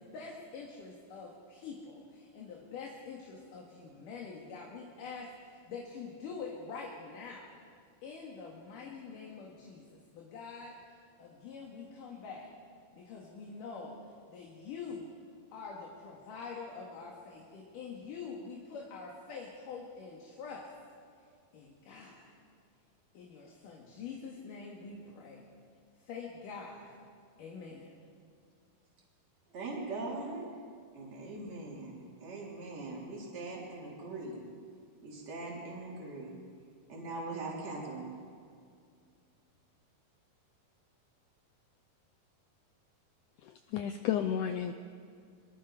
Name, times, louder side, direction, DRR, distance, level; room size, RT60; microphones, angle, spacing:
voice 1, 0.0-7.5 8.0-10.7 11.2-12.5 12.9-15.1 15.5-20.7 21.5-22.3 23.1-25.5 26.0-27.0 27.4-27.9, left 5 dB, 60° left, -1 dB, 3.2 m, -45 dB
voice 2, 29.5-30.5 31.0-34.4 35.0-36.3 36.9-38.1, right 2 dB, 45° right, -3 dB, 4.6 m, -41 dB
voice 3, 43.4-44.7, left 9 dB, 85° left, 8 dB, 1.8 m, -32 dB
23.0 x 23.0 x 5.0 m, 2.2 s
omnidirectional pair, 4.4 m